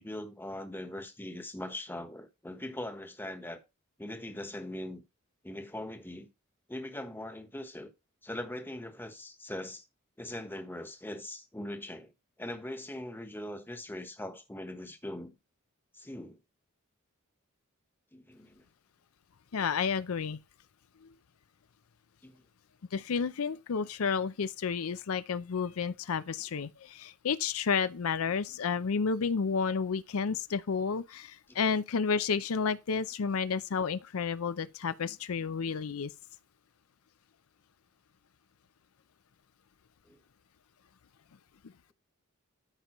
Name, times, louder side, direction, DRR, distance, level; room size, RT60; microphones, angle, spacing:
voice 1, 0.0-3.6 4.0-5.0 5.4-6.3 6.7-7.9 8.2-9.8 10.2-12.1 12.4-15.3 15.9-16.4 18.1-18.6 22.2-22.4 31.5-31.6 40.0-40.2, left 1 dB, 10° left, 1.2 m, -41 dB
voice 2, 19.5-20.4 22.9-36.1, left 5 dB, 70° left, 0.5 m, -31 dB
13.0 x 5.3 x 3.1 m
head